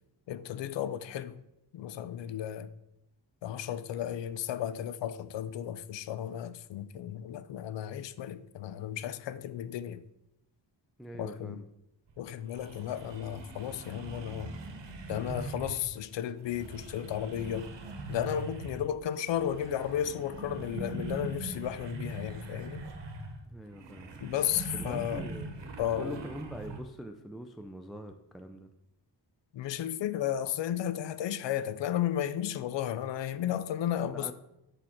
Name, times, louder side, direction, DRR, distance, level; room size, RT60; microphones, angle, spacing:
voice 1, 0.3-1.4 1.7-2.7 3.4-10.0 11.2-11.6 12.2-14.5 15.1-17.7 18.1-22.9 24.2-25.3 25.8-26.2 29.5-34.3, left 10 dB, 90° left, 0.5 m, -34 dB
voice 2, 11.0-11.7 23.5-24.1 24.7-25.5 26.0-28.7 34.1-34.3, equal, ahead, 0.3 m, -43 dB
sound 1, 12.1-12.2 12.5-15.9 16.4-18.9 19.2-26.8, right 2 dB, 85° right, 1.0 m, -42 dB
6.2 x 5.0 x 4.3 m
wide cardioid pair, 120°, 42 cm